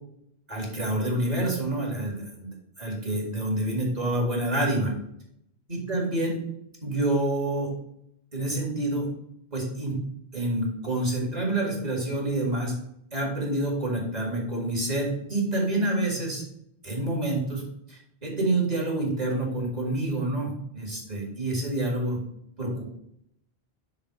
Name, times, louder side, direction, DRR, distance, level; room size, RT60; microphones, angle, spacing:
voice 1, 0.5-4.9 5.7-6.4 6.8-7.7 8.3-9.1 9.5-10.0 10.3-12.7 13.1-16.4 16.8-17.6 17.9-22.2 22.6-22.8, right 1 dB, 40° right, -2 dB, 2.2 m, -27 dB
6.3 x 3.7 x 5.9 m, 0.74 s
omnidirectional pair, 1.1 m